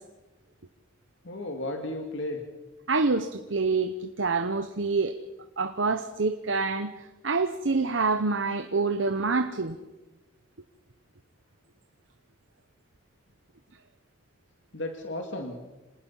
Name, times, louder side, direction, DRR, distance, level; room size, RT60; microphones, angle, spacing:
voice 1, 1.2-2.4 14.7-15.6, left 1 dB, 70° left, 3 dB, 2.3 m, -34 dB
voice 2, 2.9-5.1 5.6-6.9 7.2-9.8, right 4 dB, 75° right, 9 dB, 1.0 m, -26 dB
27.0 x 19.5 x 5.7 m, 1.1 s
head